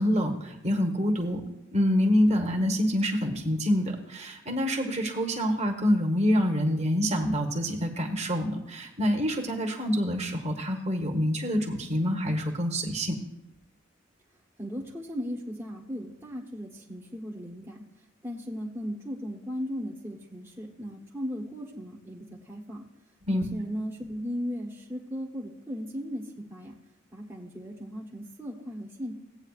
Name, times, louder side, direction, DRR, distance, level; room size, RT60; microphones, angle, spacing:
voice 1, 0.0-13.2 23.3-23.4, equal, 35° right, 2 dB, 1.3 m, -26 dB
voice 2, 14.6-17.8 18.2-22.8 23.3-26.7 27.1-29.1, equal, 10° right, -4 dB, 1.1 m, -37 dB
16.5 x 8.8 x 2.4 m, 0.92 s
head